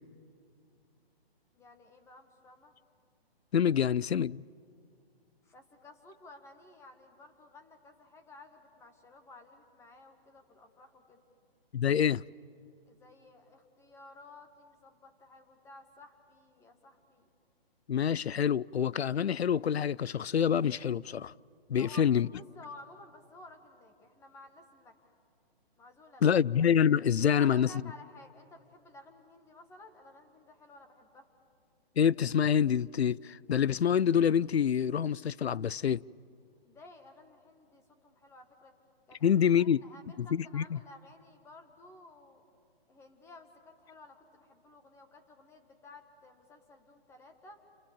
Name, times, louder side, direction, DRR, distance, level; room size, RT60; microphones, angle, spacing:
voice 1, 1.5-2.7 5.4-11.2 12.8-17.3 21.8-25.1 25.8-26.4 27.3-31.3 36.6-38.7 39.1-42.4 42.9-47.6, left 2 dB, 10° left, 1.6 m, -54 dB
voice 2, 3.5-4.4 11.7-12.2 17.9-21.3 21.7-22.3 26.2-27.7 32.0-36.0 39.2-39.8 40.2-40.6, left 8 dB, 90° left, 0.6 m, -26 dB
29.0 x 28.0 x 7.3 m
hypercardioid pair, 150°, 31 cm